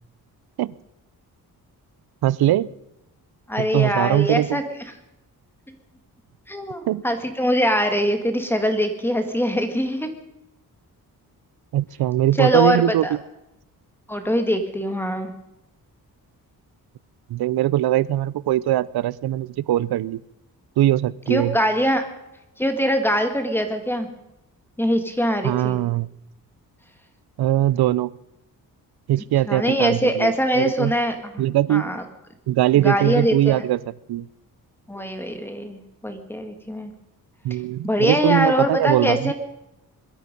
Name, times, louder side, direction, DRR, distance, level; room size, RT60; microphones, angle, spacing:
voice 1, 2.2-2.7 3.6-4.6 6.9-7.0 11.7-13.1 17.3-20.2 20.8-21.6 25.4-26.1 27.4-28.1 29.1-30.9 31.4-31.9 32.5-33.8 34.1-34.3 37.4-39.3, right 13 dB, 85° right, 20 dB, 0.6 m, -21 dB
voice 2, 3.5-4.6 6.5-10.1 12.4-12.8 13.0-13.2 14.1-15.3 21.3-22.0 22.6-24.1 24.8-25.8 29.5-31.4 31.7-32.0 32.8-33.6 34.9-36.9 37.8-39.3, equal, 5° left, 7 dB, 1.8 m, -22 dB
21.5 x 13.0 x 5.3 m, 0.88 s
wide cardioid pair, 160°, 37 cm